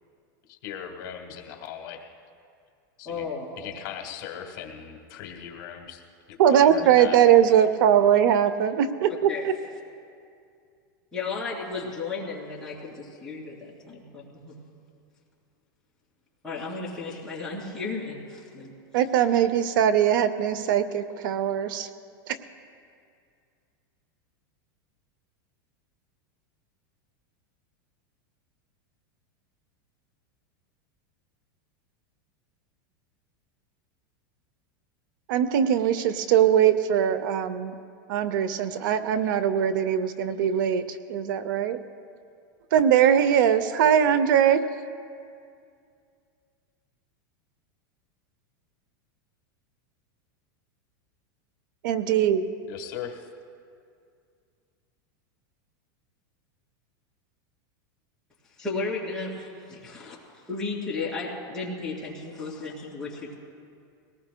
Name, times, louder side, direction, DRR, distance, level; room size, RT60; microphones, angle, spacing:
voice 1, 0.5-2.0 3.0-3.2 3.6-6.0 6.5-7.2 52.7-53.3, left 9 dB, 55° left, 3 dB, 1.4 m, -38 dB
voice 2, 3.0-3.7 6.7-6.8 9.3-9.5 11.1-14.6 16.4-18.7 58.6-60.2 60.5-63.3, left 4 dB, 5° left, -6 dB, 2.8 m, -34 dB
voice 3, 6.4-9.5 18.9-21.9 22.3-22.4 35.3-37.7 38.1-41.8 42.7-44.6 51.8-52.4, right 9 dB, 65° right, 13 dB, 0.6 m, -21 dB
22.0 x 18.5 x 2.2 m, 2.3 s
supercardioid pair, 160°, 12 cm